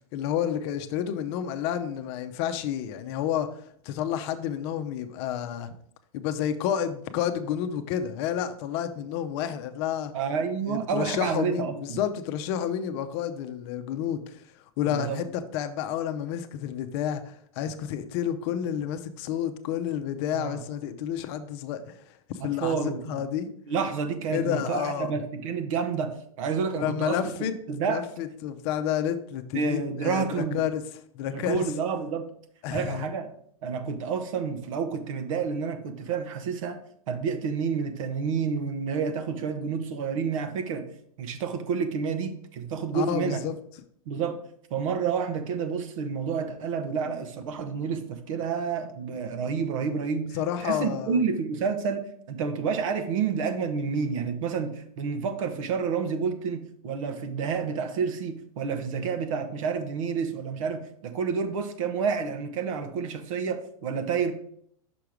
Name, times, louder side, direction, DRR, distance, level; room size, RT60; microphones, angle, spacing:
voice 1, 0.1-3.5 3.8-5.7 6.1-10.1 10.7-14.4 14.8-22.0 22.3-23.5 24.3-25.1 26.7-27.5 27.9-30.8 31.1-31.6 32.6-33.1 42.9-43.5 50.3-51.2, left 9 dB, 45° left, 9 dB, 0.7 m, -30 dB
voice 2, 10.1-12.0 14.9-15.2 20.3-20.6 22.4-23.2 23.7-28.0 29.5-30.6 31.3-32.3 32.7-33.3 33.6-36.8 37.1-40.9 41.2-43.4 44.1-44.4 44.7-64.3, right 6 dB, 60° right, 8 dB, 1.0 m, -29 dB
6.0 x 4.6 x 5.0 m, 0.67 s
hypercardioid pair, 130°, 19 cm